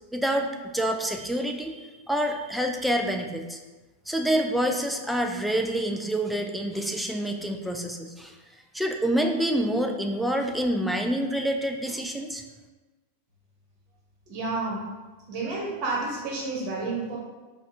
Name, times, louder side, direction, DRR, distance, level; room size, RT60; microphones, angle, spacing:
voice 1, 0.1-3.6 4.1-8.3 8.7-12.4, right 1 dB, ahead, 3 dB, 0.4 m, -27 dB
voice 2, 14.3-14.8 15.3-17.2, right 3 dB, 40° right, -3 dB, 1.2 m, -30 dB
5.3 x 2.3 x 2.8 m, 1.2 s
figure-of-eight pair, 90°, 0 cm